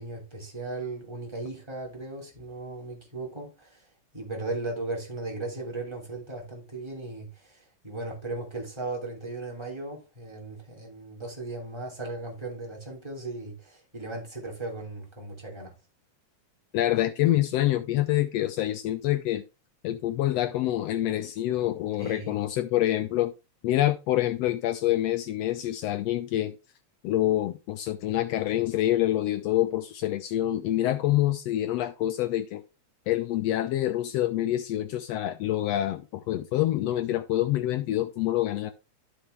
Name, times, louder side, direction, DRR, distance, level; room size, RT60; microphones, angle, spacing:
voice 1, 0.0-3.8 4.1-15.7 22.0-22.4, right 2 dB, 10° right, 2.6 m, -37 dB
voice 2, 16.7-19.4 19.8-23.3 23.6-26.5 27.0-32.6 33.1-38.7, left 14 dB, 80° left, 1.5 m, -26 dB
13.0 x 4.5 x 3.3 m
omnidirectional pair, 3.3 m